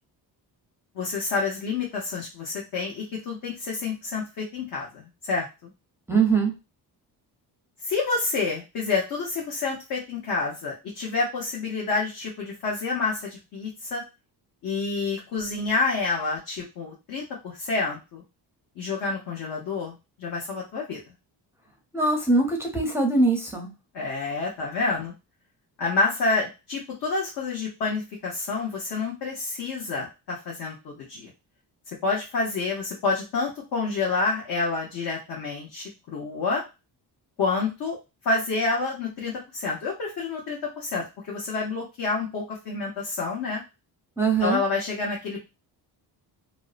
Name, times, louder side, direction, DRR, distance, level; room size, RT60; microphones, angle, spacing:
voice 1, 0.9-5.7 7.8-14.0 14.6-18.2 18.8-21.0 23.9-25.1 25.8-31.3 31.9-36.6 37.4-38.0 38.2-43.6 44.4-45.5, left 3 dB, 60° left, -2 dB, 0.8 m, -28 dB
voice 2, 6.1-6.5 21.9-23.7 44.2-44.6, right 3 dB, 5° right, 0 dB, 0.5 m, -22 dB
2.6 x 2.0 x 2.4 m, 0.26 s
cardioid pair, 125°, 41 cm